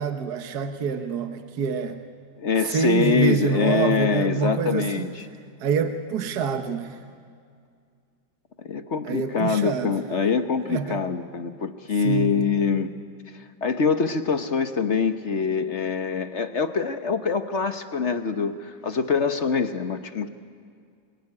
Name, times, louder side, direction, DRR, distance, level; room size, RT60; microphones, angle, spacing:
voice 1, 0.0-2.0 2.6-5.1 5.6-7.0 9.0-10.0 10.7-11.0 12.0-12.5, right 6 dB, 60° right, 7 dB, 1.7 m, -26 dB
voice 2, 2.4-5.1 8.6-12.9 13.6-20.3, left 5 dB, 45° left, 9 dB, 1.2 m, -24 dB
27.5 x 22.5 x 9.7 m, 2.2 s
omnidirectional pair, 2.0 m